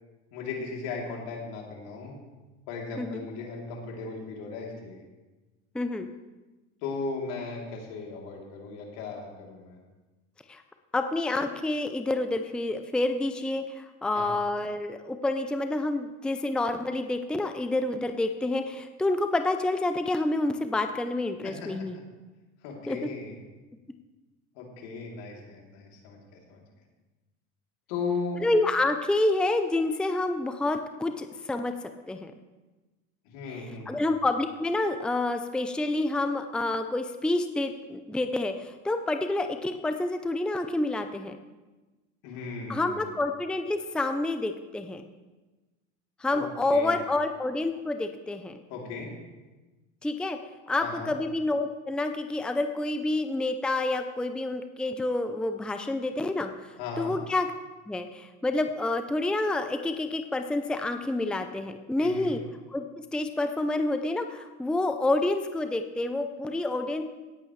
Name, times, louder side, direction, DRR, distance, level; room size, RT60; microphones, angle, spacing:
voice 1, 0.3-2.2 2.7-5.0 6.8-9.8 14.1-14.3 21.4-21.7 22.6-23.4 24.5-26.6 27.9-28.4 33.2-34.1 42.2-43.1 46.3-46.4 46.7-47.0 48.7-49.1 50.8-51.1 56.8-57.2 62.0-62.3, left 4 dB, 75° left, -1 dB, 3.3 m, -36 dB
voice 2, 5.7-6.1 10.5-10.6 10.9-21.9 22.9-23.1 28.4-31.7 32.1-32.3 33.9-41.4 42.7-45.1 46.2-48.6 50.0-50.4 50.7-56.5 57.0-57.5 57.9-62.4 62.7-62.8 63.1-67.0, left 2 dB, 5° left, 7 dB, 0.6 m, -28 dB
18.0 x 8.4 x 3.2 m, 1.2 s
supercardioid pair, 100°, 35 cm